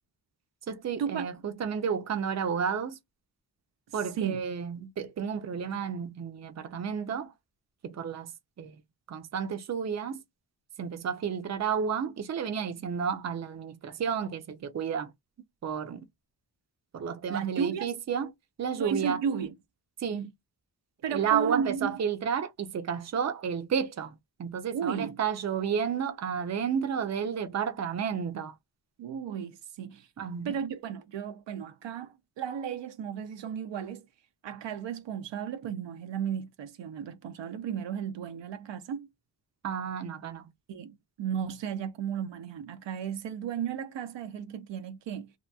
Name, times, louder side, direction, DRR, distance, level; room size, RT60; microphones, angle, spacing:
voice 1, 0.7-3.0 3.9-7.3 7.8-8.3 8.6-8.8 9.1-10.2 10.8-15.1 15.6-16.1 16.9-18.3 18.6-19.2 20.0-20.3 21.1-24.1 24.4-28.5 30.2-30.5 39.6-40.5, right 7 dB, 40° right, 0.5 m, -31 dB
voice 2, 3.9-4.4 17.3-17.9 18.8-19.5 21.0-21.9 24.7-25.2 29.0-30.1 30.4-34.1 34.4-39.1 40.7-45.3, right 8 dB, 85° right, 0.6 m, -34 dB
2.8 x 2.3 x 2.2 m
cardioid pair, 70°, 43 cm